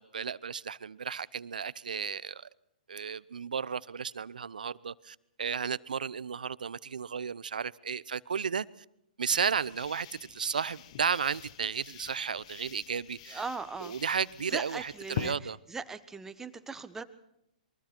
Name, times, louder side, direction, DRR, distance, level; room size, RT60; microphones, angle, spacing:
voice 1, 0.0-2.5 2.9-8.7 9.2-13.4 13.8-15.6, right 6 dB, 80° right, 0.8 m, -33 dB
sound 1, 9.3-15.3, left 11 dB, 50° left, 1.2 m, -44 dB
voice 2, 13.3-13.9 14.5-17.0, right 4 dB, 10° right, 1.4 m, -39 dB
28.0 x 23.0 x 4.5 m
hypercardioid pair, 125°, 4 cm